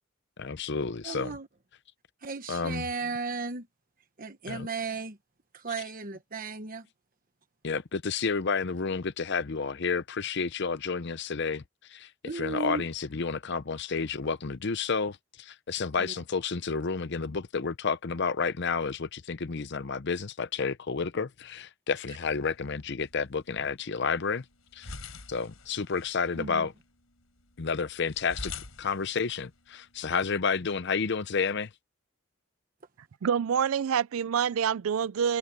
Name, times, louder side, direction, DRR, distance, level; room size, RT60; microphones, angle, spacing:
voice 1, 0.4-1.4 2.5-2.9 4.5-4.7 7.6-11.6 11.9-24.4 24.7-24.9 25.3-26.7 27.6-28.5 28.8-31.7, left 5 dB, 55° left, 0.7 m, -30 dB
voice 2, 1.0-1.5 2.2-3.7 4.2-5.2 5.5-6.9 12.2-12.8 16.0-16.1 26.4-26.7, right 4 dB, 40° right, 1.1 m, -35 dB
sound 1, 22.4-30.4, left 4 dB, 85° left, 4.3 m, -47 dB
voice 3, 33.2-35.4, right 7 dB, 80° right, 0.4 m, -26 dB
head